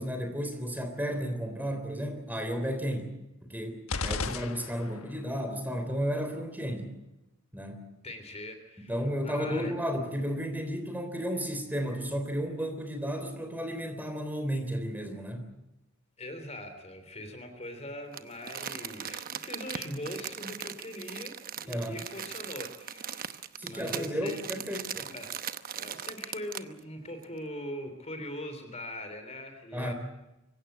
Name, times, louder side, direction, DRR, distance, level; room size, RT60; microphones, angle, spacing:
voice 1, 0.0-3.1 3.4-6.9 7.5-7.9 8.9-15.5 21.7-22.0 23.6-25.1 29.7-29.9, equal, 10° right, 6 dB, 3.4 m, -33 dB
sound 1, 3.9-5.2, left 4 dB, 75° left, 1.3 m, -34 dB
voice 2, 8.0-8.9 9.2-9.8 16.2-24.4 25.0-25.3 25.7-29.9, left 1 dB, 30° left, 8 dB, 3.3 m, -41 dB
Crumpling crinkling, 18.1-26.8 27.2-27.3, right 9 dB, 45° right, 0.9 m, -39 dB
25.0 x 16.5 x 8.0 m, 0.92 s
head